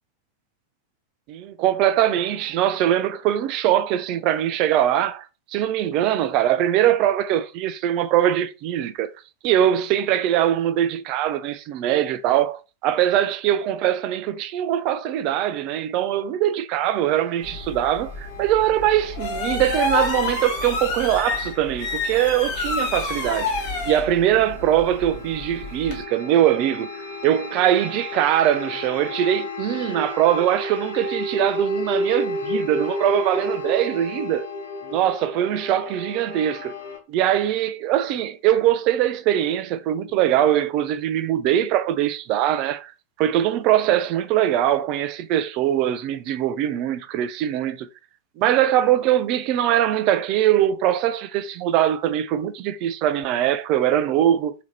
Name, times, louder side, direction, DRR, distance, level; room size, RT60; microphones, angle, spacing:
voice 1, 1.3-5.3 5.5-9.1 9.4-23.5 23.9-26.9 27.2-34.5 34.9-36.7 37.1-42.9 43.2-47.9 48.4-54.5, right 11 dB, 40° right, 0.4 m, -22 dB
sound 1, 17.0-37.0, left 1 dB, 70° left, 1.0 m, -33 dB
sound 2, 17.4-26.0, left 3 dB, 45° left, 1.1 m, -29 dB
3.5 x 2.8 x 3.1 m
figure-of-eight pair, 90°, 0 cm